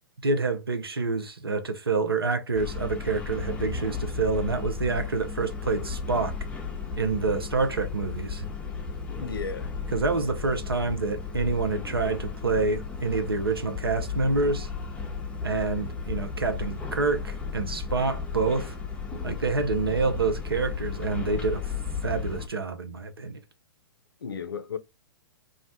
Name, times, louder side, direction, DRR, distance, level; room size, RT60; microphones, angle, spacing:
voice 1, 0.2-6.3 7.0-8.5 9.9-14.7 15.4-18.7 19.2-21.7 22.0-23.4, right 4 dB, 85° right, 0.5 m, -27 dB
sound 1, 2.5-22.5, left 5 dB, 10° left, 0.6 m, -34 dB
voice 2, 9.2-9.7 13.1-13.2 19.3-19.4 24.2-24.8, left 5 dB, 75° left, 0.4 m, -34 dB
2.5 x 2.1 x 3.9 m
figure-of-eight pair, 115°, 12 cm